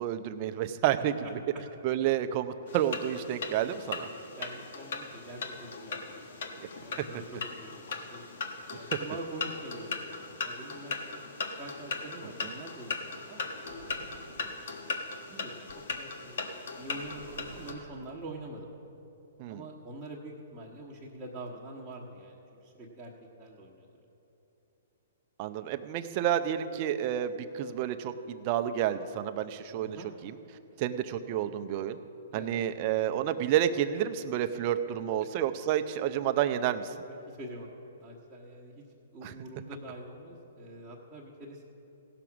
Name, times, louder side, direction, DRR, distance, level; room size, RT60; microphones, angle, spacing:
voice 1, 0.0-1.1 1.8-4.1 7.1-7.2 8.9-9.0 12.4-12.5 19.4-19.6 25.4-30.0 30.2-30.4 30.8-32.0 32.3-36.9 39.2-39.3, right 11 dB, 40° right, 8 dB, 0.6 m, -30 dB
sound 1, 2.7-17.7, left 4 dB, 65° left, 1.3 m, -39 dB
voice 2, 4.3-8.2 8.7-11.2 11.6-13.5 14.4-15.7 16.0-18.7 19.5-23.1 23.4-23.9 29.8-30.1 32.3-32.5 37.1-37.7 38.0-38.8 39.1-41.6, right 1 dB, 20° right, -7 dB, 1.3 m, -45 dB
sound 2, 13.6-14.7 15.7-15.9 16.7-18.3, right 4 dB, 70° right, 0.9 m, -51 dB
16.5 x 5.9 x 6.2 m, 3.0 s
hypercardioid pair, 130°, 0 cm